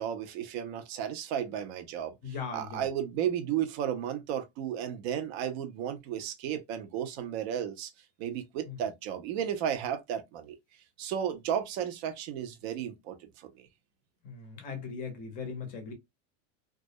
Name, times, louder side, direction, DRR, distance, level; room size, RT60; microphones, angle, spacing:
voice 1, 0.0-7.9 8.2-10.6 11.0-13.7, right 9 dB, 60° right, 0.6 m, -34 dB
voice 2, 2.2-2.9 8.7-8.8 14.2-15.9, left 5 dB, 25° left, 0.5 m, -39 dB
2.3 x 2.0 x 2.6 m
supercardioid pair, 170°, 36 cm